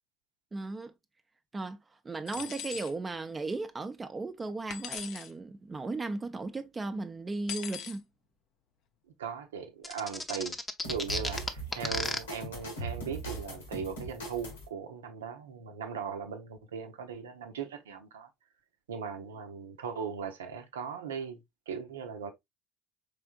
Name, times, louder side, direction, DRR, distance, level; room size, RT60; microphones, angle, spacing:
voice 1, 0.5-0.9 1.5-8.0, right 3 dB, 20° right, 0.6 m, -36 dB
sound 1, 2.3-2.9 4.7-5.3 7.5-8.0, left 9 dB, 55° left, 0.5 m, -40 dB
voice 2, 9.2-10.6 10.9-18.3 18.9-21.4 21.7-22.3, right 6 dB, 80° right, 0.7 m, -38 dB
sound 2, 9.8-12.2, left 2 dB, 20° left, 0.7 m, -33 dB
sound 3, 10.8-14.7, right 2 dB, 85° left, 1.4 m, -40 dB
4.7 x 3.3 x 2.3 m
hypercardioid pair, 65°, 0 cm